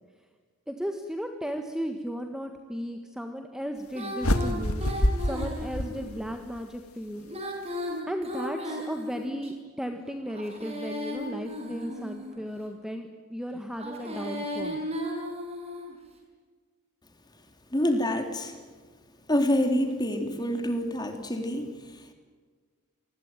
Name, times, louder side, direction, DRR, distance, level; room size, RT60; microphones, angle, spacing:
voice 1, 0.7-7.3 8.1-14.8, equal, 5° right, 5 dB, 1.6 m, -35 dB
Female singing, 3.9-6.1 7.2-9.5 10.3-12.4 13.7-15.9, left 1 dB, 30° right, 6.3 m, -35 dB
sound 1, 4.2-6.6, left 1 dB, 80° left, 2.1 m, -27 dB
voice 2, 17.7-18.6 19.3-22.1, left 1 dB, 20° left, 5 dB, 3.3 m, -27 dB
28.0 x 20.5 x 9.1 m, 1.5 s
head